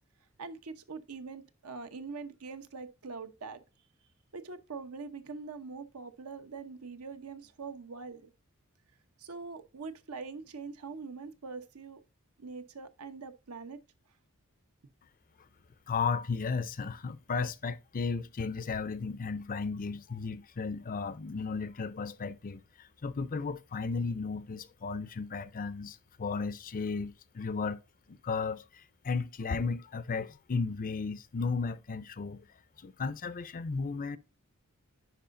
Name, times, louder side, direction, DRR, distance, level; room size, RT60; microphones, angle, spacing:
voice 1, 0.4-3.6 4.3-8.3 9.2-12.0 12.4-13.8, right 4 dB, 75° right, 0.8 m, -43 dB
voice 2, 15.9-27.8 28.1-32.5 32.8-34.2, left 4 dB, 40° left, 0.5 m, -34 dB
10.5 x 4.7 x 2.5 m
head